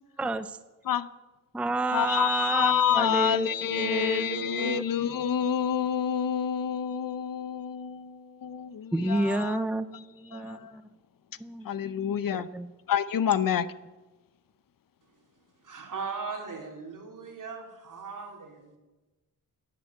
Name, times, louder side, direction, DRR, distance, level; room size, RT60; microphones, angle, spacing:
voice 1, 0.2-0.6 1.5-5.1 8.9-10.8 11.4-11.7 12.3-12.7, right 2 dB, 5° right, 0.5 m, -30 dB
voice 2, 1.9-8.2 8.4-9.5 11.7-12.5 12.9-13.7, left 8 dB, 75° left, 0.8 m, -27 dB
voice 3, 15.6-18.8, right 5 dB, 65° right, 3.4 m, -38 dB
11.0 x 11.0 x 9.5 m
wide cardioid pair, 140°, 34 cm